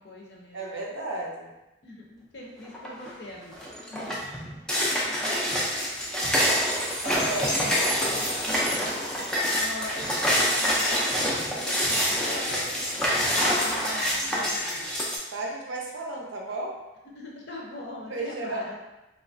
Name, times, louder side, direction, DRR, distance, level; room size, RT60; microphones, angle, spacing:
voice 1, 0.0-0.6 1.8-4.2 4.7-4.9 7.3-9.1 9.5-14.9 17.1-18.8, left 1 dB, 55° left, -2 dB, 0.5 m, -41 dB
voice 2, 0.5-1.5 7.0-7.6 9.4-9.7 14.4-14.5 15.3-16.8 18.1-18.6, right 2 dB, 75° right, -1 dB, 0.5 m, -34 dB
sound 1, 2.7-3.1 3.5-15.2, equal, 5° left, 0.3 m, -26 dB
3.0 x 2.3 x 2.5 m, 0.99 s
head